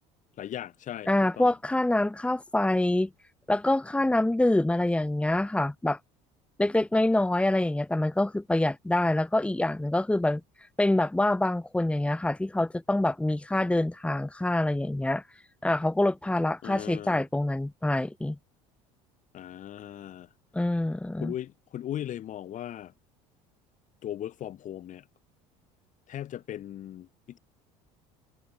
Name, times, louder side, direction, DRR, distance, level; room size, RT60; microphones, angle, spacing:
voice 1, 0.4-1.1 1.4-1.5 16.6-17.2 19.3-20.3 21.2-22.9 24.0-25.1 26.1-27.4, left 11 dB, 50° left, 6.1 m, -38 dB
voice 2, 1.1-3.1 3.5-6.0 6.6-10.4 10.8-15.2 15.6-18.4 20.5-21.3, left 1 dB, 5° left, 2.3 m, -26 dB
supercardioid pair, 90°, 16 cm